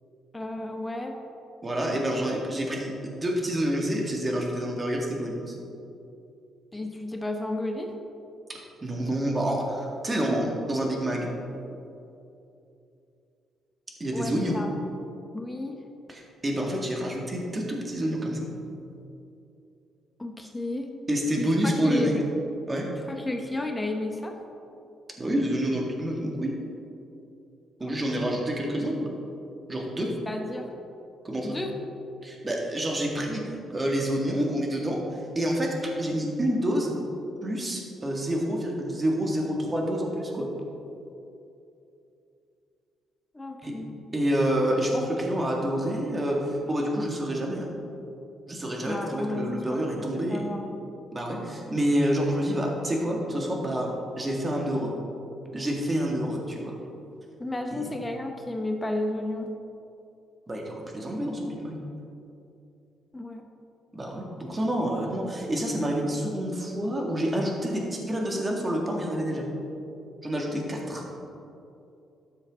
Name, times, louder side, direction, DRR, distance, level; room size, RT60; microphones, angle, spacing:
voice 1, 0.3-1.2 6.7-7.9 14.1-14.7 15.3-15.8 20.2-20.9 21.4-22.2 23.1-24.4 27.8-28.0 30.0-30.7 31.4-31.7 43.3-43.9 48.8-49.8 50.3-50.7 57.4-59.5 63.1-63.4, left 1 dB, 15° left, 4 dB, 0.9 m, -32 dB
voice 2, 1.6-5.5 8.8-11.3 14.0-14.6 16.1-18.5 21.1-22.2 22.7-22.9 25.2-26.5 27.8-29.1 29.7-30.1 31.2-31.6 32.2-36.9 37.4-40.5 43.6-43.7 44.1-47.7 48.5-50.4 51.1-53.9 54.2-54.9 55.5-56.8 57.7-57.9 60.5-61.8 63.9-69.5 70.2-71.0, equal, 25° right, -1 dB, 1.9 m, -28 dB
12.5 x 7.2 x 3.7 m, 2.8 s
cardioid pair, 90°, 0 cm